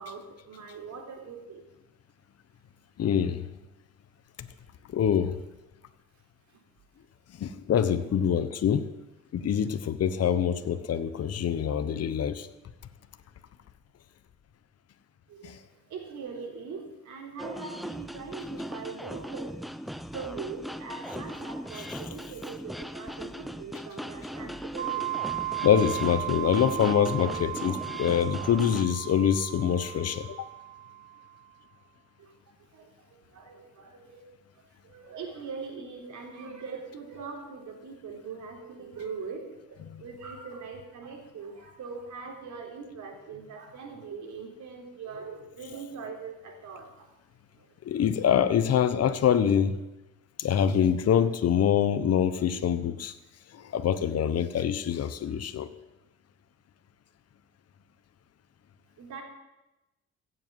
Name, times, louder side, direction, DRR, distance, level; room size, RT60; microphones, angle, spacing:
voice 1, 0.0-1.6 15.3-15.6 15.9-19.6 20.1-25.1 32.2-32.3 32.7-34.3 34.6-39.4 39.7-47.1 47.6-47.7 59.0-59.2, right 5 dB, 70° right, 2 dB, 3.7 m, -41 dB
voice 2, 3.0-3.4 4.4-4.5 4.9-5.4 7.4-8.9 9.3-12.5 15.4-15.6 21.7-22.0 25.6-30.5 47.8-49.8 50.4-53.1 53.5-55.7, left 8 dB, 55° left, 12 dB, 1.0 m, -25 dB
sound 1, 17.4-28.8, equal, ahead, 0.5 m, -39 dB
sound 2, 24.8-31.3, right 15 dB, 40° right, 3.0 m, -35 dB
16.0 x 7.8 x 7.6 m, 1.0 s
cardioid pair, 90°, 30 cm